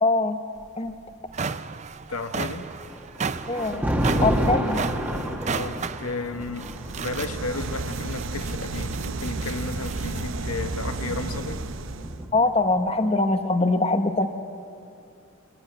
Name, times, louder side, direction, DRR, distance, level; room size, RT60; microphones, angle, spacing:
voice 1, 0.0-0.4 0.8-0.9 3.5-3.8 4.2-4.8 12.3-14.3, left 2 dB, 25° left, 8 dB, 0.9 m, -22 dB
sound 1, 0.6-0.7 1.1-10.3, right 5 dB, 30° right, 0.5 m, -34 dB
voice 2, 2.1-2.7 5.5-11.6, left 3 dB, 80° left, 8 dB, 1.2 m, -33 dB
Thunder, 2.6-9.8 10.8-12.6, equal, 5° right, 1.5 m, -30 dB
sound 2, 6.5-12.3, right 3 dB, 60° right, 0.8 m, -32 dB
22.5 x 17.5 x 9.2 m, 2.6 s
head